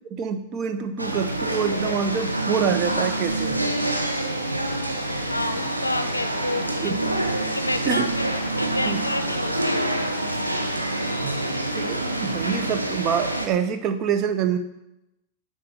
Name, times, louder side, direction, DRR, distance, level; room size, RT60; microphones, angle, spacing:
voice 1, 0.1-3.6 6.8-6.9 7.9-8.1 8.8-9.0 11.2-14.6, right 7 dB, 35° right, 8 dB, 0.8 m, -26 dB
sound 1, 1.0-13.5, right 1 dB, 90° right, 0.7 m, -26 dB
voice 2, 5.3-7.0 7.4-8.2 8.5-10.1, left 2 dB, 85° left, 10 dB, 0.5 m, -30 dB
6.8 x 4.0 x 6.6 m, 0.87 s
figure-of-eight pair, 90°, 0 cm